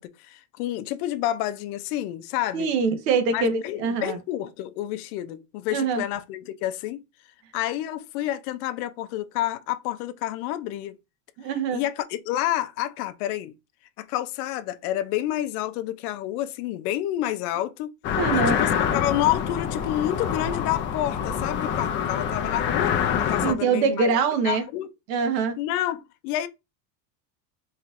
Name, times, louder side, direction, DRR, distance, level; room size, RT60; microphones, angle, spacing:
voice 1, 0.0-2.7 3.3-7.0 7.5-11.0 11.7-13.5 14.0-17.9 18.3-24.2 24.4-24.9 25.6-26.5, left 13 dB, 65° left, 0.6 m, -29 dB
voice 2, 2.5-4.2 5.7-6.0 11.4-11.8 18.1-18.6 23.4-24.6 25.1-25.6, right 5 dB, 80° right, 1.2 m, -24 dB
sound 1, 18.0-23.5, left 8 dB, 25° left, 0.4 m, -26 dB
4.3 x 3.2 x 2.5 m
supercardioid pair, 140°, 49 cm